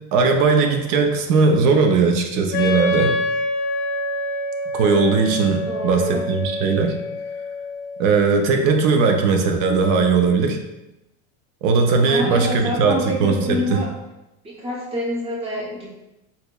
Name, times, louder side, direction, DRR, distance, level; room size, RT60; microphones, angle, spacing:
voice 1, 0.1-3.2 4.7-7.0 8.0-10.6 11.6-13.8, right 4 dB, 80° right, 4 dB, 0.6 m, -18 dB
Wind instrument woodwind instrument, 2.5-8.1, left 2 dB, 55° left, 0.5 m, -26 dB
voice 2, 5.7-6.2 12.0-13.9 14.4-15.9, equal, 15° right, -3 dB, 0.6 m, -27 dB
4.1 x 2.7 x 2.2 m, 0.95 s
cardioid pair, 160°, 37 cm